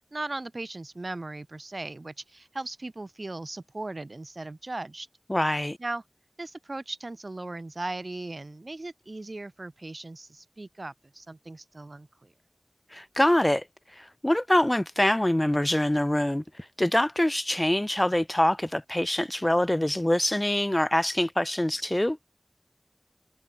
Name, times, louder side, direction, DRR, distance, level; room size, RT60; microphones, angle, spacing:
voice 1, 0.1-5.1 5.8-6.0 6.4-12.3, right 2 dB, 80° right, 3.1 m, -38 dB
voice 2, 5.3-5.8 12.9-13.6 14.0-22.2, left 1 dB, 25° left, 0.9 m, -25 dB
wide cardioid pair, 45°, 0 cm